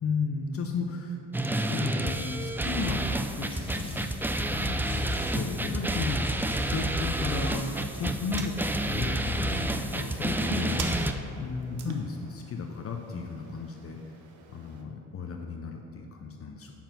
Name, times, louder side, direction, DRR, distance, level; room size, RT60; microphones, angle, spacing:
voice 1, 0.0-1.2 1.7-4.1 4.5-11.0 11.4-14.0 14.5-16.7, left 4 dB, 50° left, 2 dB, 0.7 m, -34 dB
sound 1, 1.3-11.1, right 1 dB, 5° right, 0.4 m, -29 dB
sound 2, 2.2-8.4, left 1 dB, 15° left, 1.7 m, -51 dB
sound 3, 7.6-14.8, right 5 dB, 85° right, 0.9 m, -46 dB
7.3 x 5.8 x 5.8 m, 2.8 s
cardioid pair, 90°, 30 cm